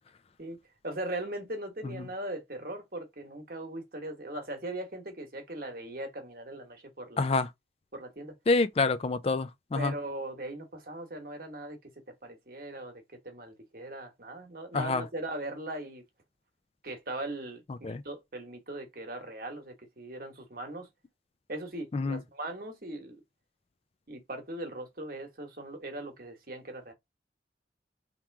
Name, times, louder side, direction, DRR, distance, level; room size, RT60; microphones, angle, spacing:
voice 1, 0.8-7.3 7.9-8.4 9.7-11.8 12.2-16.0 16.8-20.9 21.5-23.2 24.1-26.9, right 1 dB, 50° right, 1.1 m, -39 dB
voice 2, 7.2-7.5 8.5-9.9 14.7-15.0 17.7-18.0 21.9-22.2, left 3 dB, 30° left, 0.3 m, -27 dB
3.6 x 3.0 x 4.5 m
head